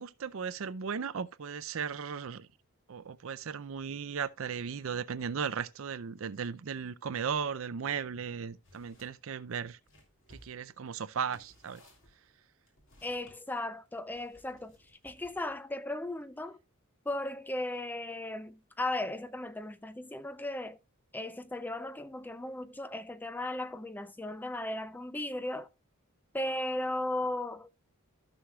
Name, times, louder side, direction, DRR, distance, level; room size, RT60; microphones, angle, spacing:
voice 1, 0.0-2.5 2.9-9.8 10.3-11.8, right 6 dB, 65° right, 0.5 m, -36 dB
sound 1, 8.6-9.1 9.5-13.4 14.1-15.6, equal, 60° left, 3.0 m, -60 dB
voice 2, 13.0-14.8 15.0-16.6 17.1-20.8 21.1-25.7 26.3-27.8, left 1 dB, 10° left, 0.3 m, -36 dB
14.5 x 6.3 x 2.3 m
head